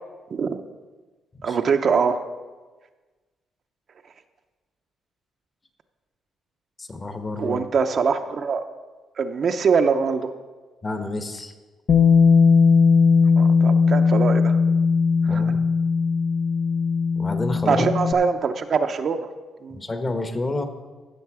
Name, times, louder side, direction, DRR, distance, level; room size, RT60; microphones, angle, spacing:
voice 1, 0.3-0.6 1.4-2.2 7.4-8.6 9.2-10.3 13.4-14.6 15.3-15.5 17.7-19.3 19.6-19.8, right 5 dB, 50° right, 7 dB, 0.7 m, -23 dB
voice 2, 6.8-7.6 10.8-11.5 15.3-15.7 17.2-17.9 19.7-20.7, left 2 dB, 30° left, 7 dB, 1.2 m, -29 dB
Bass guitar, 11.9-18.1, left 5 dB, 50° left, 0.8 m, -18 dB
15.0 x 6.6 x 4.8 m, 1.3 s
cardioid pair, 90°, 0 cm